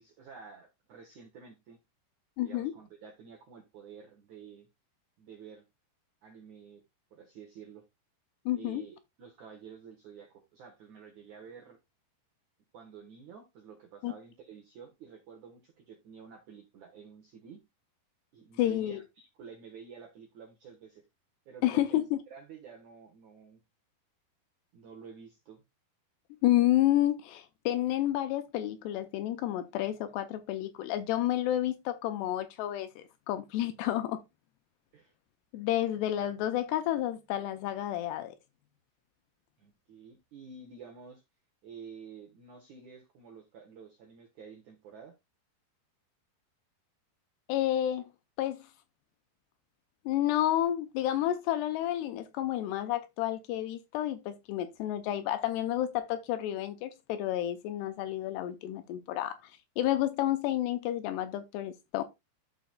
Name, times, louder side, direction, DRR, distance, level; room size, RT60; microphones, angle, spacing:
voice 1, 0.0-1.8 2.4-4.7 5.2-5.7 6.2-6.8 7.1-7.8 8.6-11.8 12.7-17.6 18.3-21.1 21.5-22.0 22.3-23.6 24.7-25.6 34.9-35.1 39.6-41.2 41.6-45.2, right 6 dB, 75° right, 1.8 m, -50 dB
voice 2, 2.4-2.7 8.5-8.8 14.0-14.1 18.6-19.0 21.6-22.2 26.4-34.2 35.5-38.3 47.5-48.1 48.4-48.7 50.1-62.0, left 13 dB, 80° left, 2.6 m, -30 dB
13.5 x 5.1 x 2.2 m
omnidirectional pair, 5.1 m